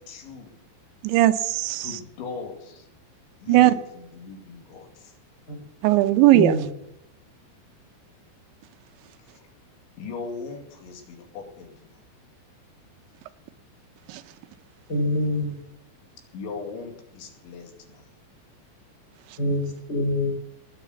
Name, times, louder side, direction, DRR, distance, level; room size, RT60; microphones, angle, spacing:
voice 1, 0.1-0.5 1.8-2.9 3.4-5.2 9.2-9.5 10.0-12.0 16.3-18.1, left 4 dB, 85° left, 4.8 m, -39 dB
voice 2, 1.0-2.0 3.5-3.7 5.8-6.5 14.1-14.2, right 15 dB, 85° right, 3.1 m, -18 dB
voice 3, 6.3-6.6 14.9-15.6 19.4-20.3, left 1 dB, 25° left, 4.1 m, -25 dB
19.0 x 8.5 x 8.2 m
omnidirectional pair, 5.2 m